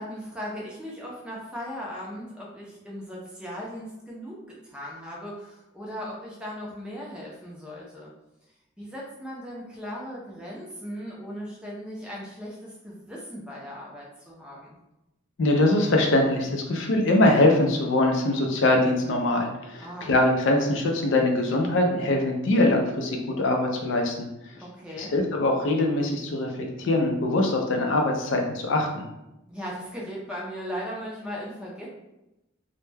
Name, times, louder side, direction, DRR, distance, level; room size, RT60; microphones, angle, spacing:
voice 1, 0.0-4.4 4.6-8.1 8.8-14.8 19.8-20.1 24.6-25.1 29.5-31.9, equal, 5° right, -5 dB, 0.4 m, -38 dB
voice 2, 15.4-24.6 25.0-29.1, left 2 dB, 70° left, 2 dB, 0.4 m, -23 dB
2.2 x 2.1 x 3.2 m, 0.92 s
head